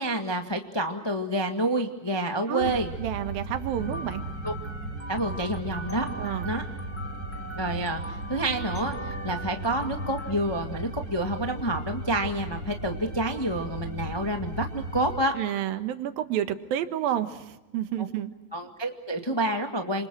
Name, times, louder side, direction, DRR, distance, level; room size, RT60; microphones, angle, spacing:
voice 1, 0.0-2.9 4.4-4.5 5.1-6.1 6.4-6.6 7.5-15.4 18.5-20.1, right 1 dB, 35° left, 4 dB, 0.4 m, -28 dB
voice 2, 2.5-4.2 6.2-6.5 15.3-18.3, right 11 dB, 80° right, 9 dB, 3.1 m, -30 dB
sound 1, 2.6-15.2, right 2 dB, 25° right, 3.9 m, -36 dB
sound 2, 3.8-10.3, right 1 dB, 5° left, 1.5 m, -40 dB
29.0 x 27.0 x 6.2 m, 1.0 s
omnidirectional pair, 4.1 m